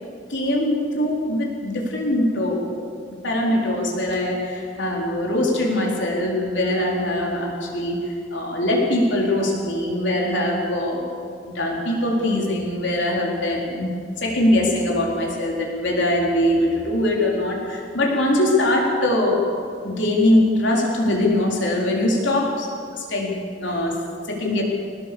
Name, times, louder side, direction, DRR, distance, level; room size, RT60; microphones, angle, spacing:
voice 1, 0.3-2.7 3.2-11.1 11.4-24.6, left 1 dB, 65° left, -1 dB, 4.2 m, -22 dB
22.5 x 18.5 x 7.0 m, 2.3 s
head